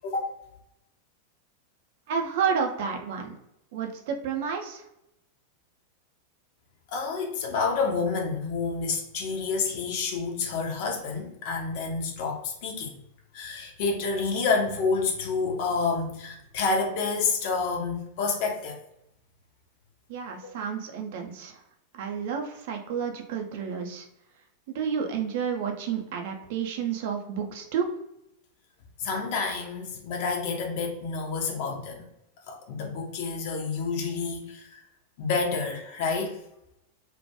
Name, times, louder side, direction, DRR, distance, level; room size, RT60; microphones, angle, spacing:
voice 1, 2.1-3.3 3.7-4.8 20.1-21.6 21.9-24.1 24.7-27.9, right 7 dB, 50° right, 3 dB, 0.4 m, -30 dB
voice 2, 6.9-13.0 13.3-18.8 20.4-20.5 29.0-32.0 32.5-34.8 35.2-36.4, left 4 dB, 50° left, 1 dB, 0.5 m, -29 dB
2.2 x 2.1 x 2.7 m, 0.82 s
figure-of-eight pair, 90°, 0 cm